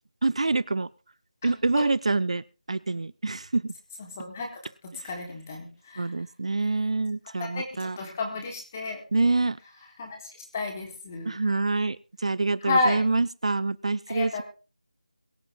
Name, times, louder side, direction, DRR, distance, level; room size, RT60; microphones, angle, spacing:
voice 1, 0.2-0.9 1.4-2.4 2.7-3.7 6.0-8.0 9.1-9.6 11.3-12.0 12.2-14.4, right 3 dB, 55° right, 20 dB, 0.5 m, -26 dB
voice 2, 1.4-1.8 4.0-4.5 5.0-6.1 7.4-9.0 9.8-10.2 10.5-11.4 12.6-13.0 14.1-14.4, left 3 dB, 20° left, 1 dB, 3.7 m, -31 dB
22.5 x 7.7 x 3.7 m, 0.34 s
figure-of-eight pair, 170°, 4 cm